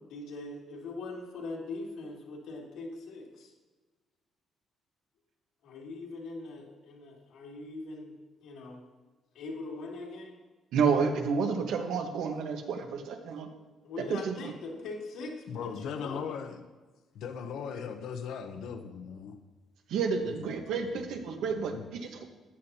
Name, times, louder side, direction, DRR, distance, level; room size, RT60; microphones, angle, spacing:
voice 1, 0.1-3.5 5.6-8.1 8.4-8.8 9.3-10.3 13.8-16.2, left 3 dB, 90° left, -3 dB, 2.7 m, -41 dB
voice 2, 10.7-13.5 14.1-14.3 19.9-22.2, right 5 dB, 80° right, 4 dB, 1.3 m, -30 dB
voice 3, 15.5-16.7 17.1-19.4 20.2-21.1 21.4-21.9, left 6 dB, 70° left, 7 dB, 0.8 m, -39 dB
14.0 x 9.9 x 2.9 m, 1.3 s
cardioid pair, 175°, 0 cm